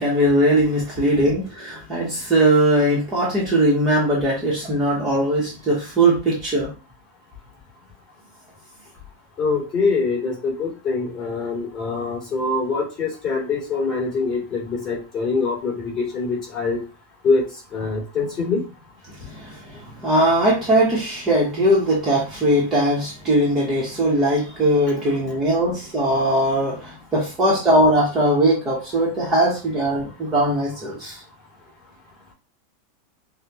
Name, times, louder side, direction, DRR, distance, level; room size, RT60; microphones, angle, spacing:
voice 1, 0.0-6.7 19.2-31.2, right 1 dB, 15° right, -5 dB, 0.9 m, -20 dB
voice 2, 9.4-16.8 17.2-17.4 17.7-18.6, left 4 dB, 25° left, -5 dB, 2.2 m, -24 dB
5.5 x 2.1 x 2.8 m, 0.33 s
supercardioid pair, 175°, 0 cm